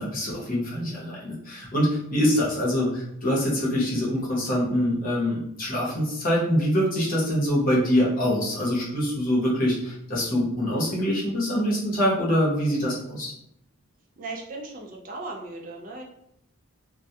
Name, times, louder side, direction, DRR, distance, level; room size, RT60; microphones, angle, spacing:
voice 1, 0.0-13.3, equal, 40° left, -5 dB, 0.8 m, -24 dB
voice 2, 14.2-16.0, right 2 dB, 40° right, 0 dB, 0.3 m, -37 dB
2.3 x 2.1 x 2.7 m, 0.75 s
head